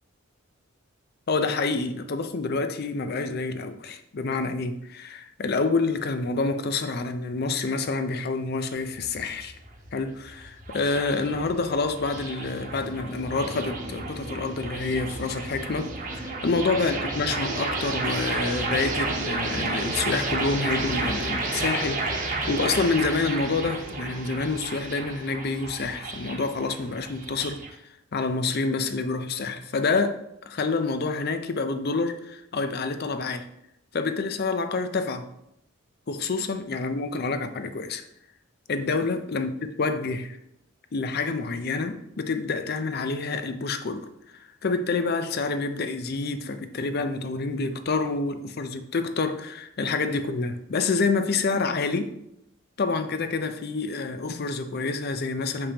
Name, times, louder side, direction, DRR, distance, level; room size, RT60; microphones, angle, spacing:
voice 1, 1.3-9.5 9.9-27.6 28.1-30.2 30.5-33.5 33.9-35.3 36.1-38.0 38.7-40.4 40.9-52.1 52.8-55.7, left 3 dB, 50° left, 0.5 m, -28 dB
sound 1, 8.7-27.7, right 3 dB, 40° right, 1.1 m, -32 dB
6.6 x 5.4 x 2.9 m
head